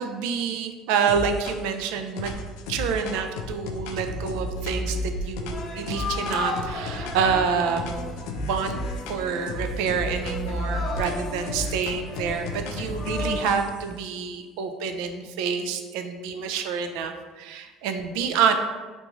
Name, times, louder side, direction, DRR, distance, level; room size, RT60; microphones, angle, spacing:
voice 1, 0.0-2.3 2.7-8.8 9.1-18.5, right 6 dB, 85° right, 7 dB, 0.3 m, -27 dB
sound 1, 1.1-1.8 2.2-7.4 7.8-9.2 9.5-13.9, left 1 dB, 85° left, 0.3 m, -33 dB
sound 2, 5.5-13.5, left 2 dB, 40° left, 0.7 m, -35 dB
3.6 x 2.5 x 3.0 m, 1.4 s
cardioid pair, 120°, 0 cm